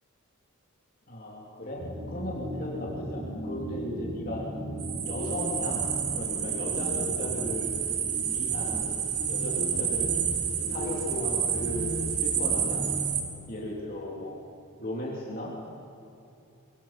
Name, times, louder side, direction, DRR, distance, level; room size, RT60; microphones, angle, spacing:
voice 1, 1.1-4.4 5.0-5.8 6.1-7.7 8.3-8.9 9.3-10.1 10.7-12.9 13.5-14.4 14.8-15.5, left 1 dB, 40° left, -3 dB, 3.0 m, -36 dB
sound 1, 1.8-13.6, equal, 45° right, 4.1 m, -37 dB
sound 2, 4.8-13.2, right 8 dB, 80° right, 2.6 m, -30 dB
24.0 x 22.5 x 5.9 m, 2.8 s
head